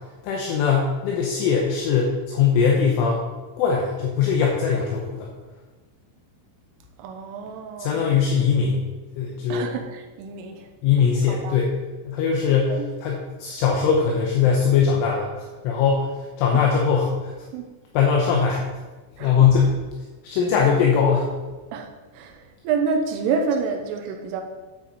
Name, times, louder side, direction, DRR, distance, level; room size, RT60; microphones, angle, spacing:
voice 1, 0.2-3.2 3.6-5.3 7.8-8.8 9.2-9.7 10.8-11.7 12.0-12.7 13.0-17.3 17.9-18.6 19.2-19.7 20.2-21.3, left 6 dB, 75° left, -1 dB, 3.3 m, -21 dB
voice 2, 7.0-8.2 9.5-10.7 11.3-11.6 12.7-12.9 16.5-16.7 17.5-17.7 19.2-19.5 21.7-24.4, right 5 dB, 80° right, 3 dB, 3.4 m, -28 dB
9.4 x 9.3 x 4.2 m, 1.3 s
omnidirectional pair, 6.0 m